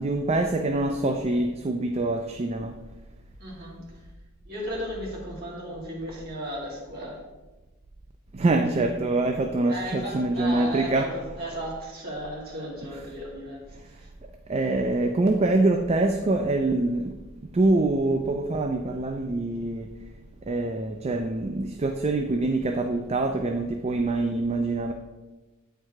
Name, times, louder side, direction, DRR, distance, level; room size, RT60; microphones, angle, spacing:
voice 1, 0.0-2.7 8.3-11.1 12.9-13.0 14.5-17.1 17.5-19.9 20.5-24.9, right 2 dB, 30° right, 5 dB, 0.4 m, -25 dB
voice 2, 3.4-3.8 4.5-7.2 9.7-13.7 13.9-14.1, equal, 45° right, -3 dB, 2.2 m, -35 dB
8.8 x 4.6 x 4.7 m, 1.2 s
head